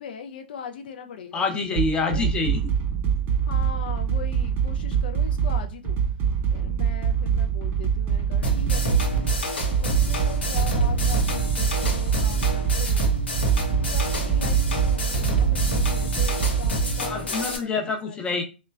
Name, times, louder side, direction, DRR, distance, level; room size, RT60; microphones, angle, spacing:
voice 1, 0.0-1.4 2.0-2.3 3.5-6.0 6.5-9.3 9.8-13.1 13.7-18.4, left 7 dB, 65° left, 0.4 m, -40 dB
voice 2, 1.3-2.6 17.1-18.4, left 3 dB, 15° left, 0.6 m, -26 dB
sound 1, 1.7-16.7, right 7 dB, 30° right, 0.6 m, -24 dB
sound 2, 8.4-17.6, right 1 dB, 80° left, 0.8 m, -27 dB
3.0 x 2.1 x 2.3 m
hypercardioid pair, 115°, 6 cm